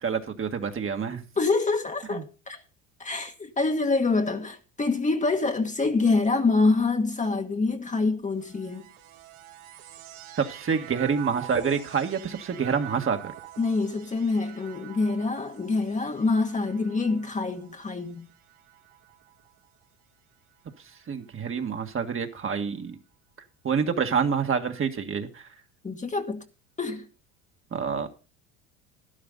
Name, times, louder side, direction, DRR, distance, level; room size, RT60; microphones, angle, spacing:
voice 1, 0.0-1.2 2.1-2.2 10.4-13.3 21.1-22.9 23.6-25.4 27.7-28.1, right 6 dB, 35° right, 1.7 m, -27 dB
voice 2, 1.4-2.6 3.0-8.9 13.6-18.3 25.8-26.4 26.8-27.0, left 3 dB, 20° left, 1.4 m, -26 dB
sound 1, 8.3-19.8 20.6-21.3, right 14 dB, 70° right, 1.8 m, -45 dB
12.0 x 11.5 x 3.9 m
hypercardioid pair, 80°, 38 cm